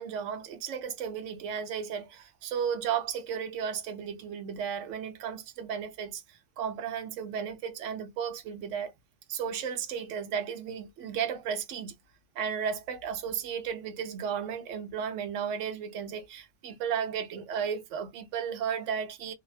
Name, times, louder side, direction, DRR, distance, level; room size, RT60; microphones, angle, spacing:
voice 1, 0.0-8.9 9.3-11.9 12.4-19.3, right 7 dB, 80° right, 1.0 m, -34 dB
2.5 x 2.1 x 2.3 m
omnidirectional pair, 1.3 m